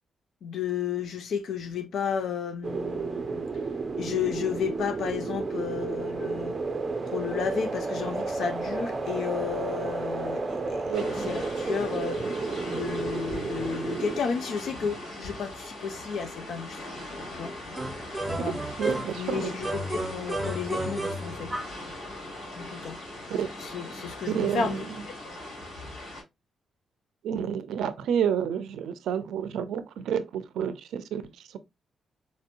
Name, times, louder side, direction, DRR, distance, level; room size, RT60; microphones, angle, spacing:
voice 1, 0.4-3.4 4.0-6.6 7.1-12.2 12.7-16.9 17.3-17.5 18.4-18.6 19.2-21.5 22.6-23.0 23.6-24.7, left 6 dB, 65° left, 0.3 m, -32 dB
sound 1, 2.6-14.2, right 3 dB, 30° right, 0.5 m, -32 dB
sound 2, 10.9-26.2, left 1 dB, 90° left, 2.7 m, -40 dB
sound 3, 17.8-19.3 19.6-21.8, right 1 dB, 5° right, 0.8 m, -32 dB
voice 2, 18.4-19.5 23.3-23.5 24.3-25.0 27.2-31.2 31.5-31.6, right 8 dB, 90° right, 0.5 m, -30 dB
4.1 x 2.8 x 2.5 m
cardioid pair, 145°, 0 cm